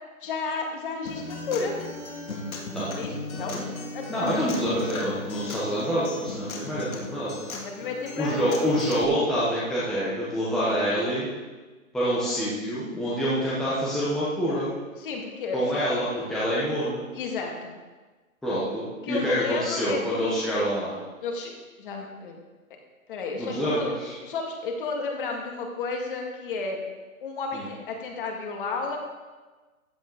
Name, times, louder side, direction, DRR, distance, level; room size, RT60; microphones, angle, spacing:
voice 1, 0.2-1.8 3.0-3.6 3.9-4.2 7.6-8.7 15.0-15.9 17.1-17.8 19.0-20.3 21.2-21.5 21.8-22.4 23.1-23.9 24.2-26.8 27.2-29.0, left 4 dB, 35° left, 1 dB, 2.1 m, -32 dB
Acoustic guitar, 1.1-9.0, left 2 dB, 70° left, 2.5 m, -37 dB
voice 2, 3.3-3.6 4.1-7.4 8.2-11.3 11.9-14.7 15.5-17.0 18.4-20.9 23.4-24.1 27.5-27.7, equal, ahead, -9 dB, 0.9 m, -26 dB
14.5 x 9.4 x 3.9 m, 1.3 s
hypercardioid pair, 155°, 43 cm